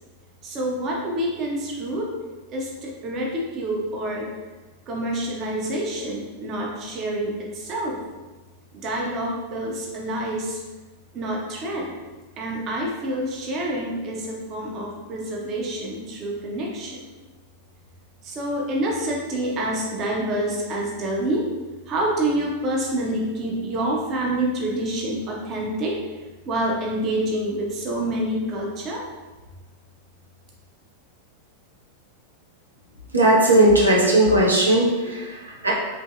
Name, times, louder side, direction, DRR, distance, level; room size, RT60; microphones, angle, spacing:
voice 1, 0.4-2.1 2.5-4.3 4.9-8.0 8.7-10.6 11.1-11.9 12.4-17.1 18.2-21.5 21.9-26.0 26.5-29.0, right 1 dB, 35° right, -2 dB, 0.5 m, -27 dB
voice 2, 33.1-35.7, right 1 dB, 80° right, -3 dB, 0.5 m, -17 dB
2.9 x 2.6 x 2.4 m, 1.2 s
figure-of-eight pair, 90°, 0 cm